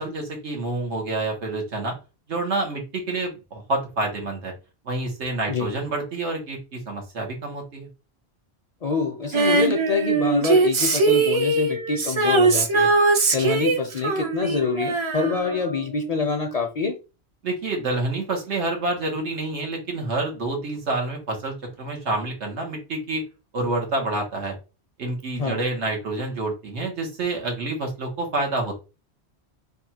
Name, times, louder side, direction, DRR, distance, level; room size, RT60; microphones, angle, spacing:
voice 1, 0.0-1.9 2.3-4.5 4.8-7.9 17.4-23.2 23.5-24.5 25.0-28.8, right 2 dB, 90° right, 1 dB, 1.5 m, -28 dB
voice 2, 8.8-12.9 13.3-16.9 25.4-25.6, left 5 dB, 50° left, 4 dB, 0.5 m, -26 dB
Female singing, 9.3-15.9 16.2-16.3, right 3 dB, 45° right, 0.4 m, -21 dB
3.4 x 2.3 x 4.2 m, 0.30 s
omnidirectional pair, 1.1 m